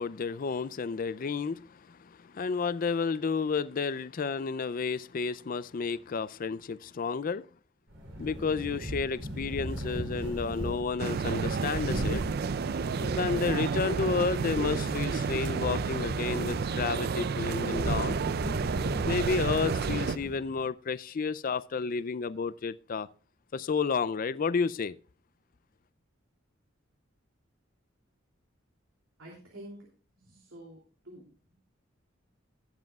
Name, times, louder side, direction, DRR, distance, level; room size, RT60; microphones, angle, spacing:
voice 1, 0.0-7.5 8.2-12.2 13.0-18.2 19.1-23.1 23.5-25.0, left 5 dB, 45° left, 0.4 m, -31 dB
sound 1, 7.9-20.6, equal, 70° right, 3.2 m, -38 dB
sound 2, 11.0-20.2, right 5 dB, 50° right, 0.4 m, -31 dB
voice 2, 29.2-29.9 30.1-30.8 31.0-31.7, right 1 dB, 90° right, 2.9 m, -49 dB
19.0 x 7.5 x 2.3 m
head